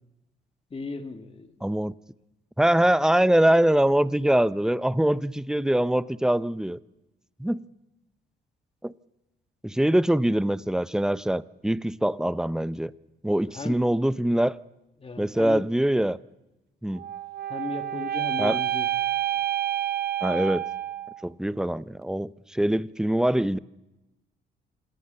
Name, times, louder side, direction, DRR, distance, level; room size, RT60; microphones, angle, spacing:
voice 1, 0.7-1.7 13.4-13.8 15.0-15.7 17.5-18.9, left 3 dB, 30° left, 2.2 m, -36 dB
voice 2, 1.6-1.9 2.6-6.8 7.4-7.6 8.8-8.9 9.6-12.9 13.2-14.6 15.2-16.2 16.8-17.0 18.4-18.6 20.2-20.7 21.2-23.6, right 1 dB, 5° right, 0.7 m, -23 dB
sound 1, 16.9-21.2, right 12 dB, 50° right, 0.8 m, -29 dB
27.5 x 18.5 x 6.9 m
cardioid pair, 90°, 20 cm